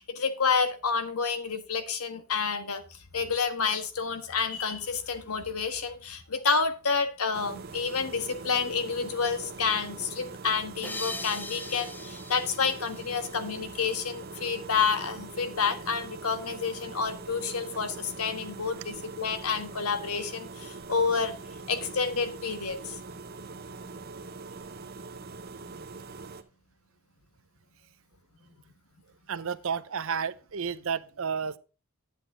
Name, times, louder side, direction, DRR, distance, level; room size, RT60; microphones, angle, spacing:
voice 1, 0.0-2.8 3.1-21.3 21.7-22.9, left 5 dB, 85° left, 1.5 m, -29 dB
sound 1, 7.3-26.4, right 3 dB, 45° right, 0.9 m, -43 dB
sound 2, 10.8-13.9, left 2 dB, 10° left, 0.5 m, -41 dB
voice 2, 29.3-31.6, right 6 dB, 65° right, 0.6 m, -31 dB
10.5 x 8.2 x 3.8 m
head